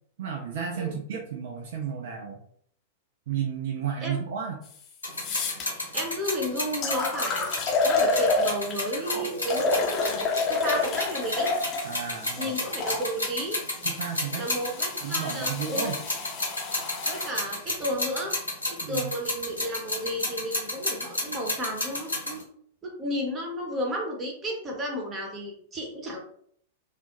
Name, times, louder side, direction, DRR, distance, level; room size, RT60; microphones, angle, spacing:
voice 1, 0.2-2.4 3.3-4.6 11.8-12.5 13.8-14.5 15.0-16.0 18.8-19.1, right 7 dB, 55° right, 1 dB, 0.4 m, -32 dB
sound 1, 4.6-4.7 5.1-5.6 6.3-6.4 6.8-8.9 9.4-13.0 13.9-17.3, left 3 dB, 25° left, 0.7 m, -29 dB
sound 2, 5.0-22.4, left 2 dB, 85° left, 1.1 m, -32 dB
voice 2, 5.9-7.5 7.8-11.5 12.4-13.6 14.3-15.9 17.1-18.3 18.7-22.5 22.8-26.2, equal, 20° right, 0 dB, 0.8 m, -33 dB
2.4 x 2.1 x 2.8 m, 0.63 s
figure-of-eight pair, 95°, 0 cm